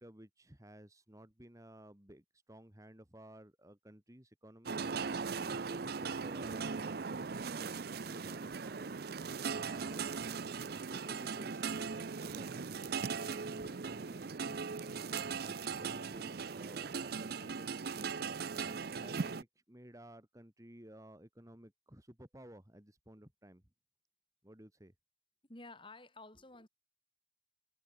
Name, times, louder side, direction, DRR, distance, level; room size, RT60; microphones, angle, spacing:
voice 1, 0.0-4.8 5.1-8.9 9.5-10.0 10.7-23.6 24.4-24.9, right 1 dB, 15° right, 2.1 m, -56 dB
sound 1, 4.7-19.4, right 5 dB, 50° right, 0.6 m, -39 dB
voice 2, 25.4-26.7, left 2 dB, 25° left, 4.2 m, -54 dB
head